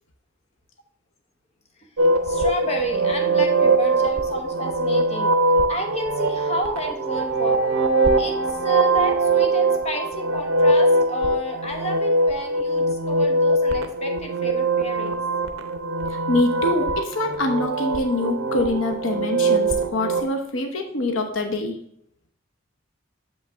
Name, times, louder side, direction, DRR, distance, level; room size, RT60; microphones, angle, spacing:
sound 1, 2.0-20.3, right 2 dB, 85° right, 0.7 m, -22 dB
voice 1, 2.2-5.3 5.7-7.6 8.2-15.2, equal, 30° left, 2 dB, 1.0 m, -31 dB
voice 2, 16.1-21.8, left 2 dB, 75° left, 4 dB, 0.9 m, -25 dB
7.0 x 5.3 x 3.5 m, 0.70 s
head